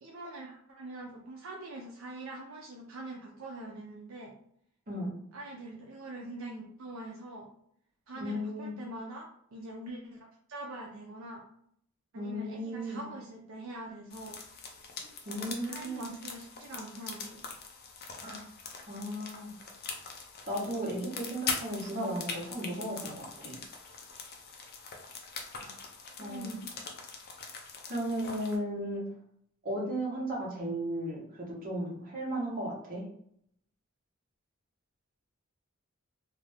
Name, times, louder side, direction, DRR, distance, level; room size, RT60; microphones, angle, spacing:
voice 1, 0.0-4.3 5.3-7.5 8.1-11.4 12.1-14.4 15.5-17.4 26.2-26.7, right 2 dB, 70° right, -1 dB, 0.5 m, -44 dB
voice 2, 8.2-8.7 12.1-13.1 15.2-16.1 18.2-18.4 18.9-19.5 20.5-23.6 25.6-25.8 26.2-26.5 27.9-29.0 29.6-33.0, right 1 dB, 45° right, -3 dB, 1.0 m, -35 dB
sound 1, 14.1-28.6, left 5 dB, 50° left, 0.5 m, -42 dB
2.6 x 2.6 x 3.3 m, 0.68 s
head